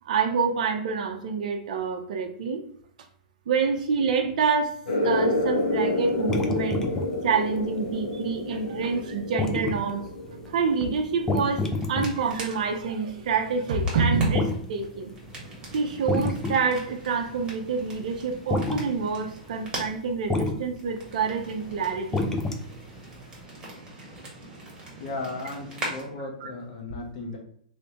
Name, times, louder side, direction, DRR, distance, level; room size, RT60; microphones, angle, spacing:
voice 1, 0.1-2.6 3.5-4.7 5.0-6.9 7.2-10.0 10.5-11.6 11.9-15.1 15.7-22.2 26.4-26.5, right 5 dB, 65° right, 4 dB, 0.6 m, -27 dB
sound 1, 4.9-12.0, left 2 dB, 90° left, 1.1 m, -29 dB
sound 2, 5.0-10.6 10.9-15.4 15.7-16.9 17.2-17.5 17.9-18.2 18.5-18.9 19.3-19.5 19.8-20.6 20.8-23.0 23.3-23.4, left 2 dB, 10° left, 0.4 m, -29 dB
sound 3, 11.3-26.0, right 1 dB, 20° right, 1.4 m, -42 dB
voice 2, 25.0-27.4, left 2 dB, 60° left, 1 dB, 0.9 m, -35 dB
3.1 x 3.1 x 2.8 m, 0.67 s
hypercardioid pair, 125°, 4 cm